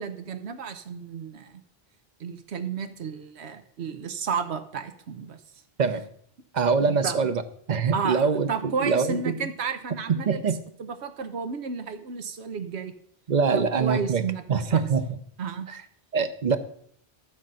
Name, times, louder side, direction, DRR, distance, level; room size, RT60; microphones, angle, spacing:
voice 1, 0.0-1.5 2.2-5.4 7.0-7.2 7.9-10.4 10.8-12.9 13.5-14.8 15.4-15.7, right 6 dB, 85° right, 8 dB, 1.1 m, -32 dB
voice 2, 6.5-7.4 7.7-9.5 10.2-10.6 13.3-14.2 14.5-15.2 15.7-15.8 16.1-16.6, right 5 dB, 45° right, 10 dB, 0.9 m, -24 dB
13.0 x 5.4 x 7.6 m, 0.66 s
omnidirectional pair, 1.1 m